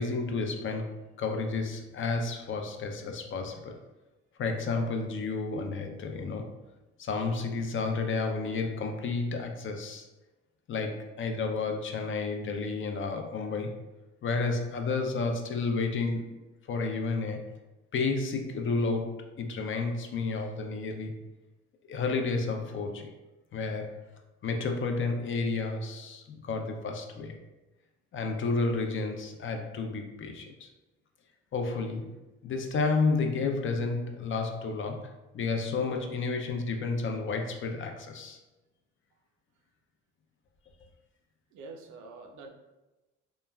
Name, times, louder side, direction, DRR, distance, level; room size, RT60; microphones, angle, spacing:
voice 1, 0.0-3.7 4.4-6.5 7.0-10.1 10.7-13.8 14.2-16.4 16.7-17.4 17.9-21.1 21.9-23.1 23.5-24.0 24.4-27.4 28.1-30.7 31.5-38.4, left 4 dB, 45° left, 4 dB, 0.4 m, -31 dB
voice 2, 41.5-42.5, right 3 dB, 75° right, 4 dB, 0.5 m, -46 dB
3.0 x 2.3 x 2.2 m, 1.1 s
cardioid pair, 90°, 30 cm